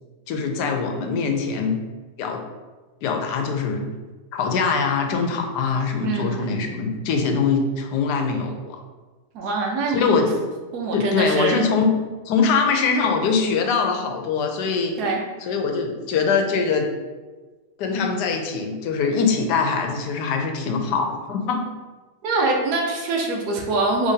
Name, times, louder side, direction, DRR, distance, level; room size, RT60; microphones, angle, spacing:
voice 1, 0.3-1.8 2.2-2.4 3.0-3.9 4.3-8.8 9.9-10.5 10.9-11.9 12.3-15.0 15.4-16.9 17.8-21.6, left 5 dB, 85° left, 4 dB, 1.2 m, -22 dB
voice 2, 6.0-6.7 9.3-10.3 10.7-11.6 15.0-15.2 22.2-24.1, right 3 dB, 75° right, 1 dB, 1.2 m, -24 dB
5.0 x 3.3 x 2.7 m, 1.3 s
omnidirectional pair, 1.7 m